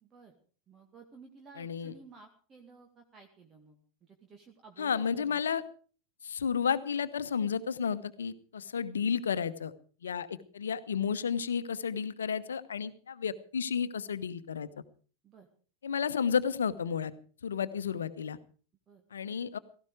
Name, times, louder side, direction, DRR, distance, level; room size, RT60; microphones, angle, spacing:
voice 1, 0.0-0.4 0.7-5.6 15.2-15.5 18.9-19.0, right 4 dB, 25° right, 3 dB, 2.1 m, -54 dB
voice 2, 1.6-1.9 4.8-5.6 6.2-9.7 10.0-14.7 15.8-17.1 17.4-18.4 19.1-19.6, left 7 dB, 65° left, 13 dB, 1.1 m, -32 dB
17.0 x 15.5 x 4.9 m, 0.41 s
figure-of-eight pair, 90°, 0 cm